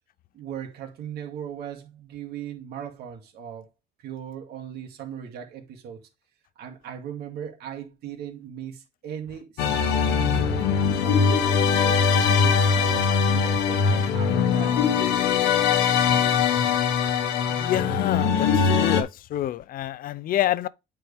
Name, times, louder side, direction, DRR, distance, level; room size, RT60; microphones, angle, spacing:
voice 1, 0.3-3.7 4.0-6.1 6.6-12.0 12.4-14.8, right 8 dB, 70° right, 2.2 m, -38 dB
sound 1, 9.6-19.0, left 6 dB, 90° left, 1.2 m, -21 dB
voice 2, 17.5-20.7, left 12 dB, 55° left, 0.5 m, -27 dB
9.0 x 4.6 x 3.5 m
cardioid pair, 110°, 17 cm